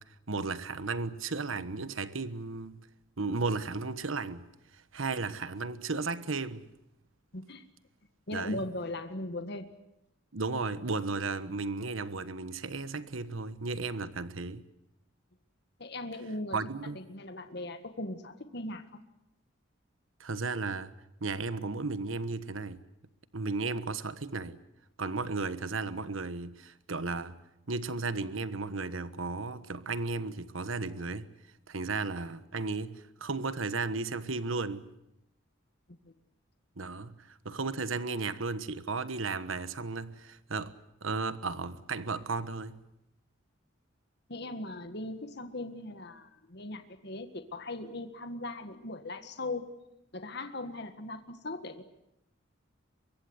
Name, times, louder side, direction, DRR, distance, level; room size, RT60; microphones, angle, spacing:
voice 1, 0.0-2.8 3.2-4.5 4.7-6.7 8.3-8.6 10.3-14.6 16.5-17.0 20.2-20.9 21.2-22.8 23.3-24.6 25.0-27.4 27.7-31.3 31.7-34.9 36.8-40.7 41.0-42.8, right 3 dB, 80° right, 1.3 m, -34 dB
voice 2, 7.3-7.6 8.3-9.7 15.8-16.6 17.1-18.8 44.3-49.7 50.1-51.8, left 2 dB, 55° left, 1.7 m, -39 dB
24.0 x 23.0 x 8.0 m
head